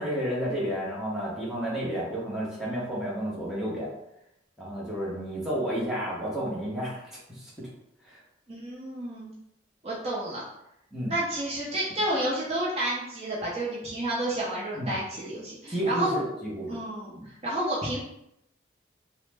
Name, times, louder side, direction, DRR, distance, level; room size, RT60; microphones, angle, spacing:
voice 1, 0.0-3.9 4.6-7.7 8.0-8.2 10.9-11.1 14.7-15.0 15.7-16.7 17.2-17.3, equal, ahead, -7 dB, 0.7 m, -31 dB
voice 2, 8.5-9.3 9.8-10.4 11.1-16.3 16.7-18.0, right 1 dB, 35° right, -6 dB, 0.6 m, -30 dB
3.1 x 2.0 x 3.2 m, 0.81 s
head